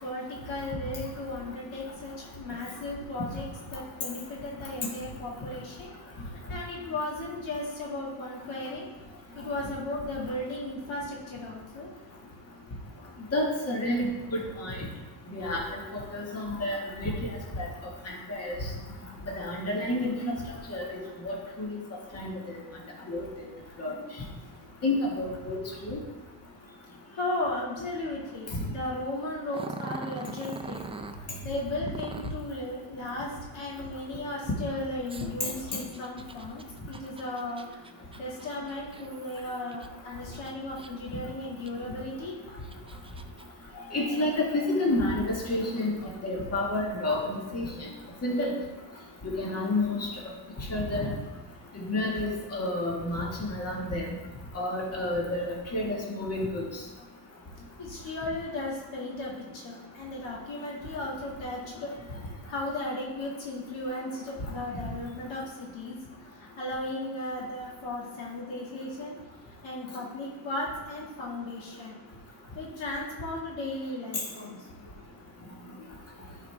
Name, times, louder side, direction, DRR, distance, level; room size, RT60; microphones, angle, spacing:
voice 1, 0.0-3.4 3.7-5.9 6.5-8.9 9.3-11.9 18.7-19.6 27.1-30.8 31.4-37.8 38.2-42.3 57.8-61.9 62.5-66.0 66.3-69.2 69.6-72.0 72.6-74.9, left 2 dB, 75° left, -4 dB, 2.4 m, -36 dB
voice 2, 13.3-14.9 15.3-17.7 18.1-18.7 19.3-20.4 20.7-21.0 21.2-21.8 22.1-22.6 23.1-23.3 23.8-23.9 24.8-26.0 35.4-35.5 43.9-47.7 48.2-48.5 49.2-50.1 50.6-51.1 51.7-54.1 54.5-56.6, left 1 dB, 30° left, -3 dB, 1.9 m, -30 dB
Growling, 29.5-31.2 31.9-32.5 35.1-39.9 40.3-41.1 41.7-41.8 42.4-43.4, right 4 dB, 15° right, 0.4 m, -42 dB
10.5 x 5.0 x 3.6 m, 1.2 s
cardioid pair, 100°, 46 cm